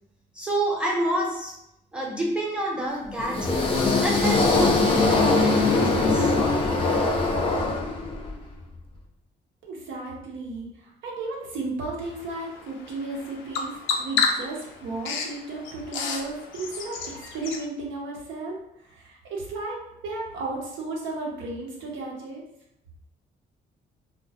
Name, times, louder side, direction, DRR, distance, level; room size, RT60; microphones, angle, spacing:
voice 1, 0.3-1.6 1.9-3.7 4.0-6.3, right 1 dB, 5° right, -3 dB, 0.7 m, -28 dB
sound 1, 3.2-8.3, left 3 dB, 25° left, 0.5 m, -22 dB
voice 2, 9.6-22.4, right 2 dB, 80° right, -2 dB, 0.7 m, -34 dB
Bird vocalization bird call bird song, 12.0-17.6, left 5 dB, 85° left, 0.4 m, -31 dB
2.2 x 2.1 x 2.7 m, 0.78 s
cardioid pair, 90°, 20 cm